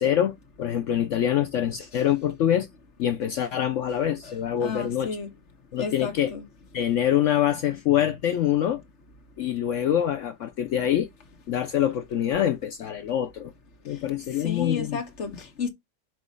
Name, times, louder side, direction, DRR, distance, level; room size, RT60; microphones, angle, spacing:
voice 1, 0.0-2.7 3.0-5.1 5.7-6.3 6.7-8.8 9.4-11.1 11.5-13.5 13.8-15.0, left 10 dB, 65° left, 0.8 m, -25 dB
voice 2, 4.6-5.3 5.8-6.5 14.4-15.7, left 5 dB, 50° left, 1.5 m, -32 dB
6.1 x 2.9 x 5.3 m
omnidirectional pair, 1.7 m